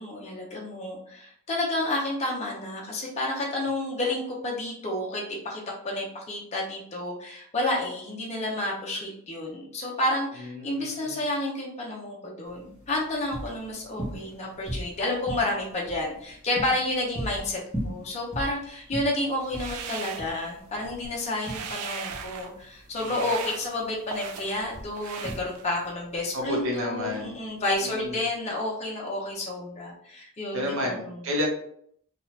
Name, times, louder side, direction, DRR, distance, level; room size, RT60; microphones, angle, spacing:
voice 1, 0.0-31.2, left 1 dB, 30° left, -3 dB, 0.6 m, -30 dB
voice 2, 10.4-11.2 23.0-23.3 26.3-27.4 27.8-28.2 30.5-31.5, left 1 dB, 60° right, 0 dB, 0.8 m, -31 dB
sound 1, 12.4-28.1, equal, 5° right, 1.0 m, -39 dB
sound 2, 19.4-20.8 21.1-22.5 22.9-24.6 25.0-25.9, right 6 dB, 85° right, 0.4 m, -38 dB
2.8 x 2.4 x 3.1 m, 0.66 s
head